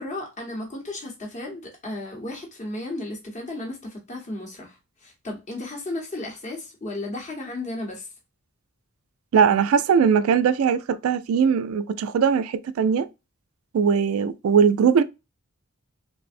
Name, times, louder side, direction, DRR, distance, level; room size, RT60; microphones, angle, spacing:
voice 1, 0.0-8.1, left 2 dB, 35° left, 0.7 m, -34 dB
voice 2, 9.3-13.1 13.7-15.0, right 6 dB, 75° right, 0.3 m, -20 dB
3.3 x 2.0 x 2.4 m
head